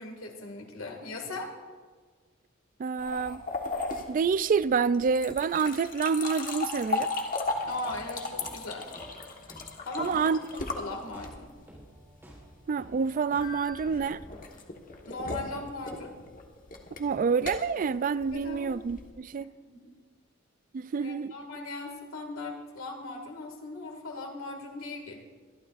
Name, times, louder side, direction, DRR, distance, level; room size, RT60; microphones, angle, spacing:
voice 1, 0.0-1.5 7.7-8.9 9.9-10.2 10.5-11.5 15.1-16.1 18.3-18.7 19.7-19.9 21.0-25.2, left 2 dB, 85° left, 2.1 m, -38 dB
voice 2, 2.8-3.4 4.1-7.1 10.0-10.4 12.7-14.2 17.0-19.5 20.7-21.4, right 5 dB, 40° right, 0.3 m, -27 dB
sound 1, 3.0-11.6 13.4-19.1, left 3 dB, 45° left, 1.4 m, -36 dB
sound 2, 7.4-14.4, right 1 dB, 10° right, 4.1 m, -53 dB
24.0 x 12.0 x 2.5 m
head